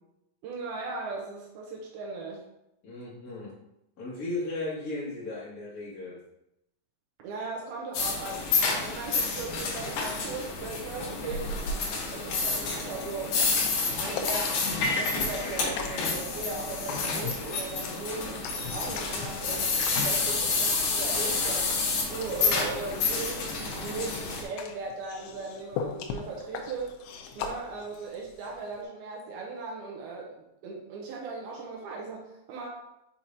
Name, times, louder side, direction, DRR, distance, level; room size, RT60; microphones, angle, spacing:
voice 1, 0.4-2.5 7.2-11.5 12.1-13.4 14.0-14.7 15.0-19.7 20.0-21.8 22.1-26.9 27.4-32.7, right 3 dB, 75° right, -1 dB, 2.3 m, -38 dB
voice 2, 2.8-3.5 4.0-6.2 20.3-20.4 27.5-27.6, left 2 dB, 30° left, -8 dB, 1.7 m, -36 dB
sound 1, 7.9-24.4, left 4 dB, 65° left, 2.4 m, -29 dB
sound 2, 13.2-28.8, left 6 dB, 80° left, 3.0 m, -40 dB
6.5 x 5.9 x 2.8 m, 0.85 s
omnidirectional pair, 5.2 m